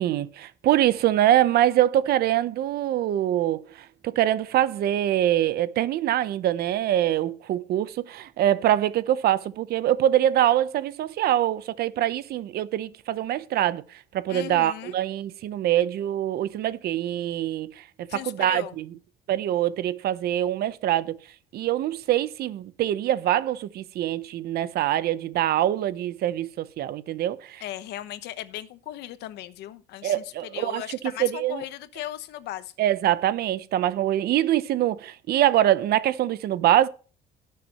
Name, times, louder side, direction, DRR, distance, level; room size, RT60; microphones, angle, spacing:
voice 1, 0.0-3.7 4.0-13.8 14.1-17.8 18.2-18.9 19.3-21.2 21.5-27.6 30.0-30.8 31.2-31.6 32.8-36.9, right 12 dB, 65° right, 0.8 m, -24 dB
voice 2, 14.3-15.0 18.1-18.8 27.6-32.7, left 13 dB, 80° left, 1.0 m, -37 dB
17.5 x 6.8 x 3.0 m
cardioid pair, 110°, 17 cm